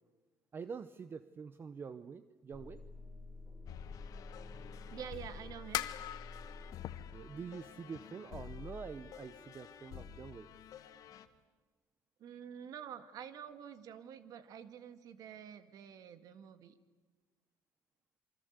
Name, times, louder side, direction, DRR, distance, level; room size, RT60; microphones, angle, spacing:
voice 1, 0.5-2.8 7.1-10.5, right 6 dB, 35° right, 13 dB, 0.9 m, -46 dB
sound 1, 2.5-10.4, left 3 dB, 15° left, 4.2 m, -52 dB
sound 2, 3.7-11.3, left 8 dB, 65° left, 1.8 m, -51 dB
sound 3, 4.4-9.5 9.9-10.4 10.7-10.9 11.3-11.4, left 13 dB, 85° left, 1.2 m, -43 dB
voice 2, 4.9-5.9 12.2-16.8, right 8 dB, 65° right, 11 dB, 1.9 m, -48 dB
27.5 x 24.0 x 8.2 m, 1.3 s
cardioid pair, 130°, 7 cm